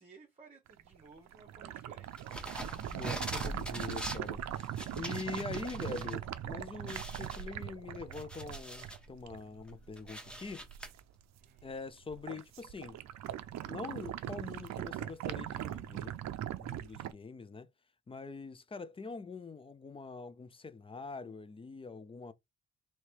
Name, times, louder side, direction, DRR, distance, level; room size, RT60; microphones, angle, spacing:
voice 1, 0.0-2.3 11.4-11.7, right 4 dB, 20° right, 1.0 m, -58 dB
sound 1, 0.7-11.0 11.4-11.8 12.1-17.1, right 12 dB, 65° right, 0.5 m, -40 dB
sound 2, 2.2-6.1 6.5-6.6 6.9-9.1 9.5-10.9, equal, 5° left, 1.0 m, -43 dB
voice 2, 2.9-10.7 11.6-13.0 13.7-16.2 16.6-17.7 18.1-22.3, left 4 dB, 20° left, 0.4 m, -44 dB
3.1 x 2.9 x 4.4 m
cardioid pair, 90°, 30 cm